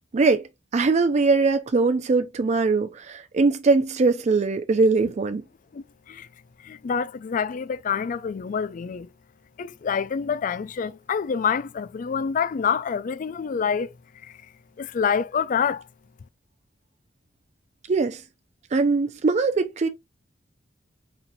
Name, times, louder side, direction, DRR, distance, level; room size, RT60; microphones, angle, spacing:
voice 1, 0.1-0.5 0.7-5.4 17.9-18.2 18.7-19.9, right 3 dB, 35° right, 0.4 m, -21 dB
voice 2, 5.7-6.3 6.6-9.1 9.6-13.9 14.2-14.4 14.8-15.8, left 6 dB, 45° left, 0.3 m, -27 dB
4.3 x 4.0 x 2.6 m
head